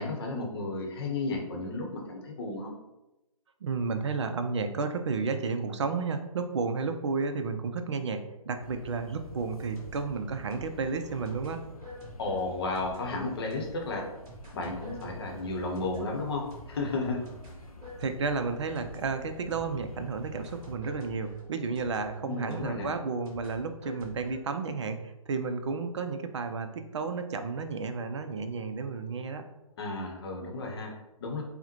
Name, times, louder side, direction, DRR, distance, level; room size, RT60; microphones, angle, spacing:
voice 1, 0.0-2.7 12.2-14.1 14.5-17.2 22.2-22.9 29.8-31.4, left 3 dB, 45° left, 1 dB, 0.8 m, -33 dB
voice 2, 3.6-11.6 18.0-29.5, right 4 dB, 55° right, 7 dB, 0.4 m, -32 dB
sound 1, 8.6-20.8, left 1 dB, 85° left, 0.6 m, -48 dB
sound 2, 9.4-20.0 20.4-24.4, equal, 30° right, 1.4 m, -49 dB
5.4 x 2.1 x 2.9 m, 0.97 s
figure-of-eight pair, 130°, 18 cm